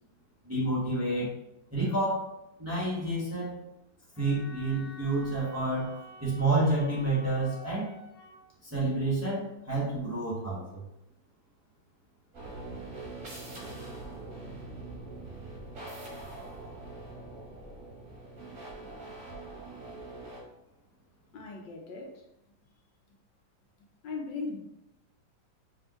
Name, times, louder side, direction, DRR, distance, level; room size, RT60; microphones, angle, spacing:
voice 1, 0.4-1.3 1.7-2.3 2.6-3.5 4.2-7.9 8.6-10.8, right 2 dB, 10° right, -8 dB, 1.2 m, -29 dB
Wind instrument woodwind instrument, 4.2-8.4, right 1 dB, 55° left, 1.3 m, -50 dB
sound 1, 12.3-20.4, right 2 dB, 45° right, 1.6 m, -43 dB
voice 2, 21.3-22.2 24.0-24.6, left 4 dB, 75° left, 1 dB, 1.3 m, -38 dB
5.1 x 3.4 x 3.0 m, 0.88 s
omnidirectional pair, 2.1 m